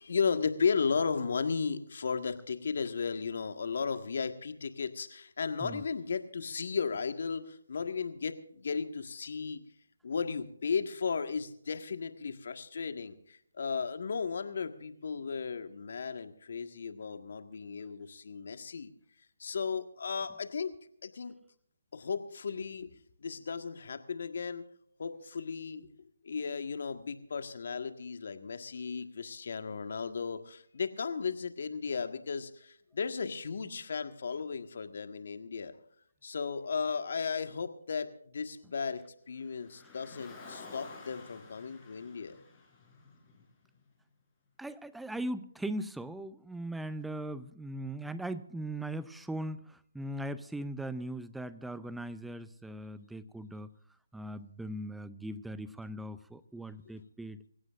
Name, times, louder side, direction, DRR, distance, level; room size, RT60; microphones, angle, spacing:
voice 1, 0.0-9.6 10.0-18.9 19.4-20.7 21.0-21.3 21.9-22.9 23.2-24.7 25.0-35.7 36.2-39.0 39.3-42.4, left 5 dB, 55° left, 8 dB, 1.7 m, -35 dB
Car, 39.4-43.8, left 3 dB, 15° left, 4.5 m, -51 dB
voice 2, 44.6-53.7 54.1-57.4, right 1 dB, ahead, 14 dB, 0.6 m, -39 dB
25.5 x 16.0 x 2.6 m, 0.67 s
figure-of-eight pair, 155°, 0 cm